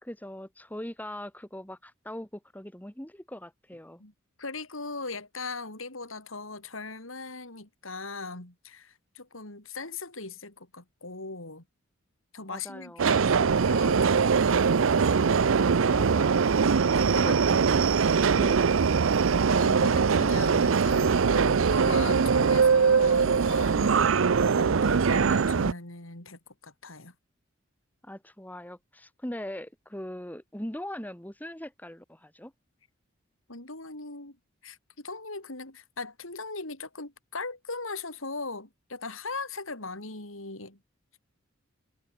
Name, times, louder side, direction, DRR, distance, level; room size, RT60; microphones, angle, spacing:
voice 1, 0.0-4.0 12.5-13.2 15.9-16.6 17.2-17.8 18.3-18.7 28.0-32.5, left 1 dB, 10° left, 2.3 m, -40 dB
voice 2, 4.4-11.6 12.3-14.6 16.9-17.4 19.5-24.1 24.5-27.1 33.5-34.4 34.6-40.8, left 3 dB, 80° left, 5.3 m, -39 dB
Subway metro underground, 13.0-25.7, right 5 dB, 70° right, 0.6 m, -22 dB
head